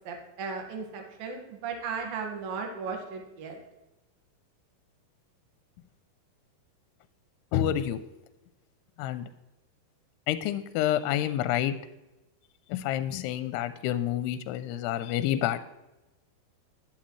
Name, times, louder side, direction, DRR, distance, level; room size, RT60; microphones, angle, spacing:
voice 1, 0.0-3.6, right 5 dB, 65° right, 2 dB, 3.3 m, -36 dB
voice 2, 7.5-8.0 9.0-9.3 10.3-11.7 12.7-15.6, left 11 dB, 85° left, 12 dB, 2.6 m, -28 dB
11.5 x 11.0 x 3.2 m, 0.99 s
omnidirectional pair, 4.8 m